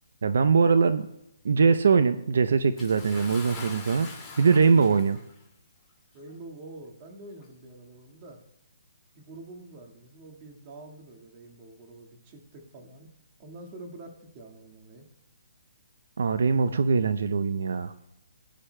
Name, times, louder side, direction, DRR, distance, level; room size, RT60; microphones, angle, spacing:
voice 1, 0.2-1.1 1.4-4.1 4.4-5.2 16.2-17.9, right 5 dB, 70° right, 11 dB, 0.6 m, -22 dB
Bathtub (filling or washing) / Splash splatter, 2.8-5.4 6.3-6.4 7.4-7.5, left 4 dB, 5° left, 2.2 m, -43 dB
voice 2, 6.1-8.4 9.1-13.1 13.4-15.0, right 2 dB, 25° right, 3 dB, 1.8 m, -46 dB
20.5 x 10.0 x 2.2 m, 0.81 s
hypercardioid pair, 160°, 0 cm